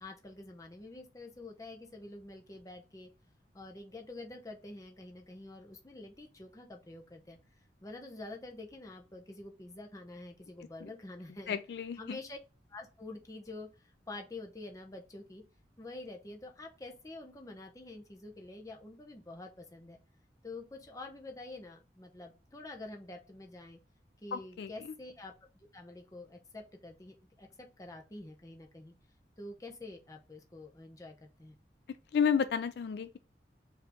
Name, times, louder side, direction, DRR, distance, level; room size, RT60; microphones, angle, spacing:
voice 1, 0.0-3.1 3.5-7.4 7.8-11.6 12.0-12.4 12.7-13.7 14.1-15.4 15.8-20.0 20.4-23.8 24.2-25.3 25.7-28.9 29.4-31.5, left 2 dB, 20° left, 0.7 m, -47 dB
voice 2, 11.5-12.2 24.3-24.7 32.1-33.2, left 7 dB, 65° left, 0.3 m, -31 dB
4.3 x 2.7 x 3.5 m
head